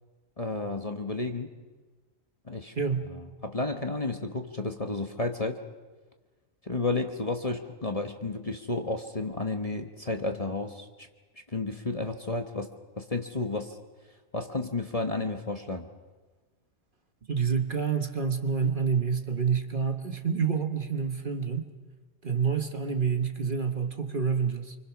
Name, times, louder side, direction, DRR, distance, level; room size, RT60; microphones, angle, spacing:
voice 1, 0.4-1.5 2.5-2.7 3.4-5.6 6.7-11.1 11.5-12.7 13.0-13.8 14.3-15.9, left 3 dB, 30° left, 5 dB, 1.1 m, -32 dB
voice 2, 2.7-3.1 17.3-21.7 22.2-24.7, right 6 dB, 40° right, 7 dB, 1.3 m, -28 dB
26.5 x 25.0 x 6.0 m, 1.3 s
omnidirectional pair, 1.4 m